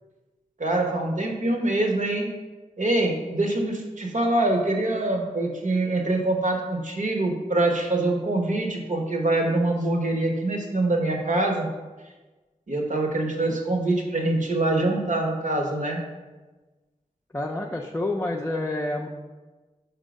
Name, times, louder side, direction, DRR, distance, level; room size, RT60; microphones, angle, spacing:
voice 1, 0.6-2.3 2.8-11.7 12.7-16.0, right 2 dB, 60° right, 1 dB, 1.0 m, -24 dB
voice 2, 17.3-19.1, left 2 dB, 15° left, -1 dB, 0.5 m, -28 dB
4.5 x 4.4 x 5.1 m, 1.2 s
wide cardioid pair, 55°, 15 cm